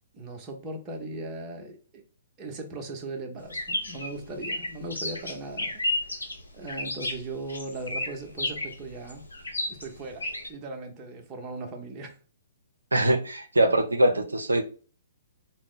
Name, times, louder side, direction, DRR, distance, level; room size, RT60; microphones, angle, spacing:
voice 1, 0.1-2.0 2.4-5.8 6.5-9.2 9.8-12.2, right 2 dB, 25° right, 0.8 m, -38 dB
sound 1, 3.5-10.5, left 1 dB, 90° left, 1.0 m, -33 dB
voice 2, 12.9-14.6, right 1 dB, 80° right, 0.5 m, -22 dB
4.4 x 2.1 x 3.8 m
figure-of-eight pair, 120°, 0 cm